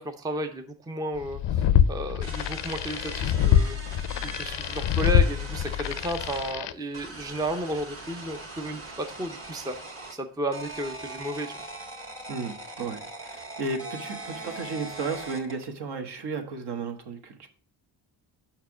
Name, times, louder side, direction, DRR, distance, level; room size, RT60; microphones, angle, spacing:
voice 1, 0.0-9.8 10.1-11.6, right 1 dB, 10° right, 7 dB, 0.6 m, -33 dB
sound 1, 1.2-6.7, left 10 dB, 65° left, 0.6 m, -25 dB
sound 2, 2.2-6.5 6.9-10.2 10.5-15.7, right 2 dB, 25° right, 1.7 m, -41 dB
voice 2, 12.3-17.5, right 4 dB, 55° right, 5 dB, 1.4 m, -34 dB
5.8 x 4.6 x 6.0 m, 0.43 s
cardioid pair, 115°, 48 cm